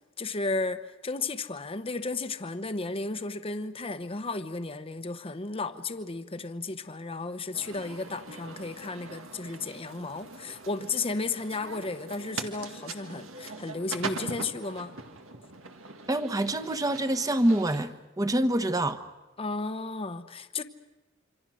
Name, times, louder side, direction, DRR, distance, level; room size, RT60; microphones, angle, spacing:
voice 1, 0.2-14.9 19.4-20.6, left 3 dB, 30° left, 0.9 m, -34 dB
sound 1, 7.5-17.8, right 4 dB, 90° right, 1.9 m, -42 dB
voice 2, 16.1-19.0, right 1 dB, 20° right, 1.2 m, -26 dB
27.0 x 25.5 x 6.3 m
head